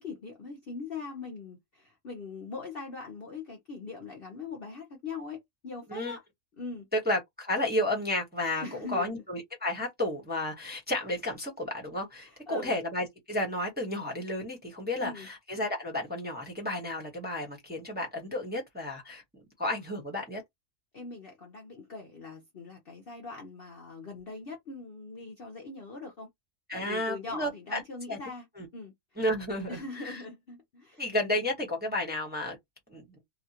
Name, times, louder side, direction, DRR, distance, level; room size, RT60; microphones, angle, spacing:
voice 1, 0.0-6.2 6.6-6.9 8.6-9.2 12.5-12.8 15.0-15.3 20.9-26.3 26.7-28.5 28.7-29.2 29.7-31.1, left 4 dB, 50° left, 0.8 m, -41 dB
voice 2, 6.9-19.2 19.6-20.4 26.7-27.8 28.1-28.2 28.6-28.7 29.2-30.2 31.0-32.6 32.9-33.2, left 1 dB, 10° right, 0.8 m, -32 dB
2.8 x 2.3 x 2.8 m
omnidirectional pair, 1.6 m